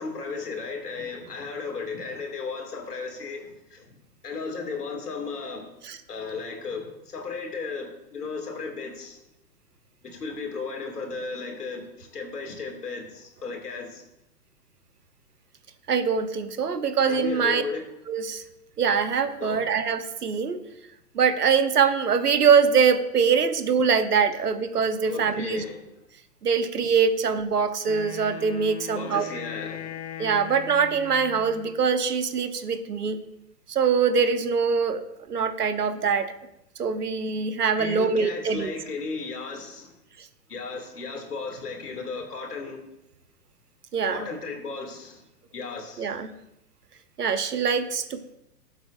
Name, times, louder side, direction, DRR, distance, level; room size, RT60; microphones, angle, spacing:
voice 1, 0.0-3.9 4.2-5.7 6.1-9.2 10.0-14.0 17.1-17.8 19.4-19.6 25.0-25.8 28.9-30.0 37.8-39.9 40.5-42.8 44.1-45.2 45.5-46.2, left 4 dB, 65° left, 2 dB, 2.7 m, -35 dB
voice 2, 15.9-17.6 18.1-18.4 18.8-20.6 21.1-25.6 26.4-29.3 30.2-33.2 33.7-36.3 36.8-38.7 43.9-44.3 46.0-46.3 47.2-48.3, right 6 dB, 70° right, 11 dB, 1.1 m, -23 dB
Wind instrument woodwind instrument, 27.8-31.8, left 8 dB, 45° left, 1.0 m, -39 dB
17.0 x 8.0 x 2.6 m, 0.83 s
figure-of-eight pair, 120°, 49 cm